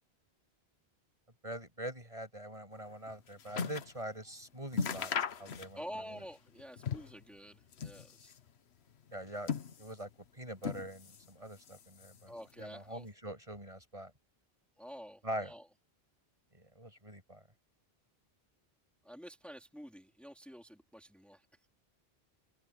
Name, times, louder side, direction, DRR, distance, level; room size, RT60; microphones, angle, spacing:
voice 1, 1.4-5.1 5.4-6.2 9.1-14.1 15.2-15.5 16.5-17.4, right 1 dB, 30° right, 8.2 m, -44 dB
sound 1, 2.8-4.0 4.3-4.4 4.7-6.0 6.3-7.2 7.6-8.5 9.1-10.1 10.6-11.3 11.6-12.3 13.0-13.1, left 6 dB, 85° left, 1.3 m, -38 dB
voice 2, 5.8-8.4 12.3-13.1 14.8-15.7 19.0-21.5, equal, ahead, 3.5 m, -49 dB
open air
omnidirectional pair, 1.1 m